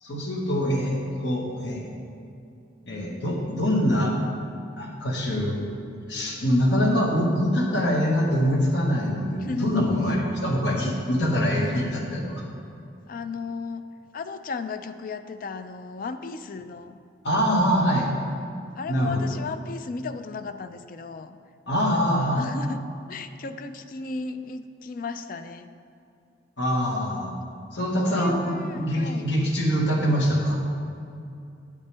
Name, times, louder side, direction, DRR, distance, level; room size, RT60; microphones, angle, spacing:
voice 1, 0.0-1.9 2.9-4.1 4.8-5.6 6.1-12.4 17.2-18.1 18.9-19.2 21.7-22.4 26.6-27.4 27.7-30.6, equal, 65° left, -1 dB, 1.4 m, -24 dB
voice 2, 9.4-9.9 13.1-13.8 14.1-17.0 18.8-21.4 21.9-22.8 23.1-25.7 28.0-29.3, left 4 dB, 50° left, 10 dB, 0.4 m, -35 dB
8.6 x 8.3 x 3.4 m, 2.5 s
head